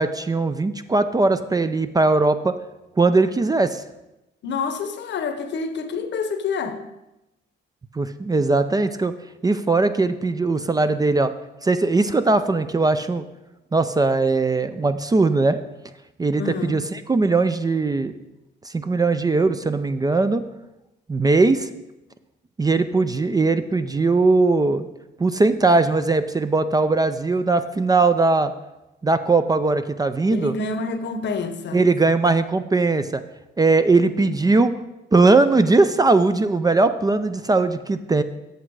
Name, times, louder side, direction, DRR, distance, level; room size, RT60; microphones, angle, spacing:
voice 1, 0.0-2.5 3.0-3.8 7.9-9.1 9.4-11.3 11.6-13.3 13.7-15.6 16.2-16.8 17.1-18.1 18.7-20.4 21.1-21.7 22.6-24.9 25.2-28.5 29.0-30.5 31.7-33.2 33.6-34.7 35.1-38.2, right 3 dB, 20° right, 11 dB, 0.4 m, -19 dB
voice 2, 4.4-6.8 16.4-16.9 30.3-31.8, left 4 dB, 65° left, 8 dB, 0.9 m, -28 dB
8.0 x 6.3 x 4.7 m, 0.95 s
cardioid pair, 90°, 20 cm